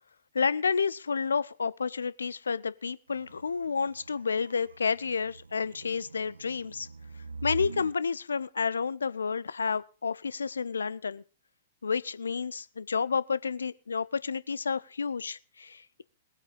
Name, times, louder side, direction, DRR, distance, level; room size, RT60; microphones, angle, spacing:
voice 1, 0.3-6.9 7.4-11.2 11.8-16.0, left 5 dB, 70° left, 0.6 m, -30 dB
sound 1, 3.1-8.0, right 4 dB, 75° right, 0.7 m, -43 dB
19.5 x 8.3 x 5.4 m
figure-of-eight pair, 105°, 0 cm